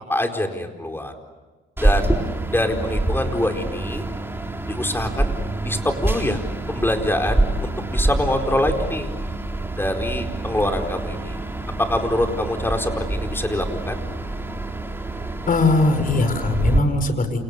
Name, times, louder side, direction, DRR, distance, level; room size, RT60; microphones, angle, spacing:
voice 1, 0.1-1.1 1.8-2.2 2.5-4.0 4.7-5.3 5.6-6.4 6.7-9.1 9.8-11.4 11.8-14.0, left 1 dB, 10° left, 4 dB, 4.4 m, -24 dB
sound 1, 1.8-16.8, right 2 dB, 10° right, 3.9 m, -26 dB
voice 2, 15.5-17.4, left 3 dB, 45° left, 9 dB, 5.2 m, -20 dB
29.5 x 29.5 x 6.8 m, 1.3 s
cardioid pair, 90°, 20 cm